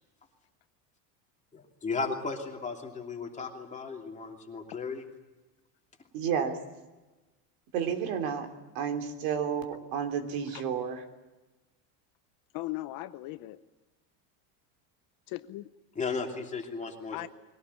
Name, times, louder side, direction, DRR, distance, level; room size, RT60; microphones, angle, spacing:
voice 1, 1.5-5.0 16.0-17.3, left 4 dB, 15° left, 2 dB, 2.9 m, -35 dB
voice 2, 6.1-6.6 7.7-8.5 8.7-11.0, right 7 dB, 60° right, 6 dB, 3.3 m, -31 dB
voice 3, 12.5-13.6 15.3-15.7 17.1-17.3, left 17 dB, 45° left, 12 dB, 0.8 m, -38 dB
22.5 x 17.5 x 9.8 m, 1.1 s
cardioid pair, 155°, 48 cm